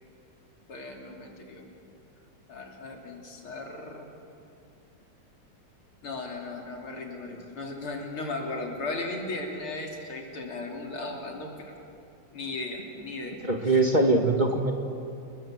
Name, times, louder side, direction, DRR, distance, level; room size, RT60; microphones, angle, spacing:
voice 1, 0.7-1.7 2.5-4.1 6.0-11.7 12.3-13.8, left 2 dB, 85° left, 1 dB, 4.0 m, -36 dB
voice 2, 13.4-14.7, right 2 dB, 25° right, 2 dB, 1.8 m, -22 dB
28.5 x 22.0 x 7.5 m, 2.6 s
omnidirectional pair, 2.3 m